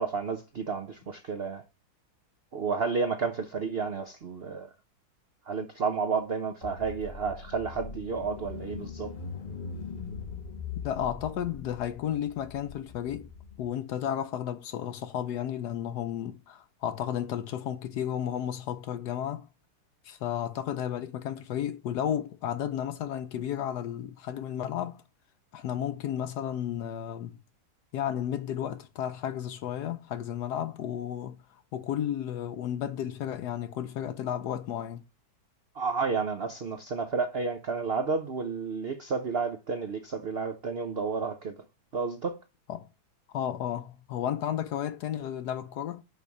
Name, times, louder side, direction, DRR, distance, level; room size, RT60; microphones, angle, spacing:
voice 1, 0.0-1.6 2.5-4.7 5.5-9.1 35.7-41.6 41.9-42.4, right 5 dB, 80° right, 0.5 m, -31 dB
Car / Engine, 6.6-13.6, left 5 dB, 85° left, 0.4 m, -41 dB
voice 2, 10.8-13.3 13.6-19.5 20.0-25.0 25.5-27.4 27.9-31.4 31.7-35.0 42.7-42.9 43.3-46.0, left 10 dB, 70° left, 1.0 m, -33 dB
6.6 x 5.3 x 4.6 m
omnidirectional pair, 2.1 m